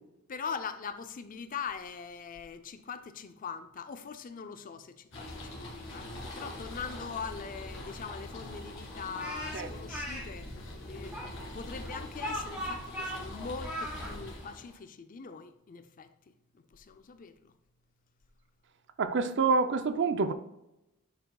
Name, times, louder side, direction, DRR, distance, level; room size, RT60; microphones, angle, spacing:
voice 1, 0.3-17.5, left 6 dB, 40° left, 0.4 m, -42 dB
sound 1, 5.1-14.8, left 1 dB, 65° left, 2.3 m, -43 dB
Speech, 9.2-10.2 11.1-14.1, equal, 5° right, 1.8 m, -38 dB
voice 2, 19.0-20.3, right 4 dB, 55° right, 0.5 m, -27 dB
10.0 x 4.6 x 2.3 m
head